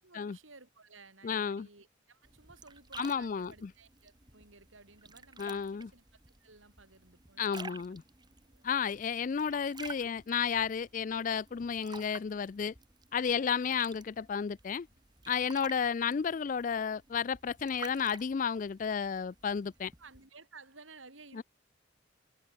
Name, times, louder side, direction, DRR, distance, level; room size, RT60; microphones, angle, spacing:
voice 1, 0.0-6.0 6.4-8.0 8.4-8.8 12.1-12.2 19.2-19.3 20.0-21.4, right 3 dB, 80° right, 5.5 m, -56 dB
voice 2, 1.2-1.7 3.0-3.7 5.4-5.9 7.4-8.0 8.6-12.7 13.1-14.9 15.3-19.9 21.3-21.4, left 6 dB, 40° left, 0.3 m, -32 dB
sound 1, 2.2-20.3, right 4 dB, 20° right, 1.7 m, -52 dB
head